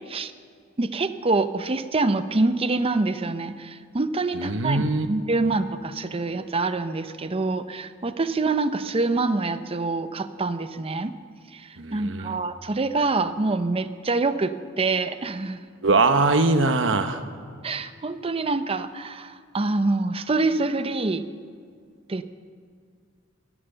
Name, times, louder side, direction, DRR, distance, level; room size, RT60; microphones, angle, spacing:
voice 1, 0.8-11.1 11.5-15.6 17.6-21.2 22.1-22.2, right 3 dB, 30° right, 11 dB, 0.6 m, -26 dB
voice 2, 4.3-5.1 11.8-12.4 15.8-17.2, right 3 dB, 70° right, 8 dB, 1.1 m, -22 dB
18.0 x 11.0 x 6.8 m, 2.1 s
head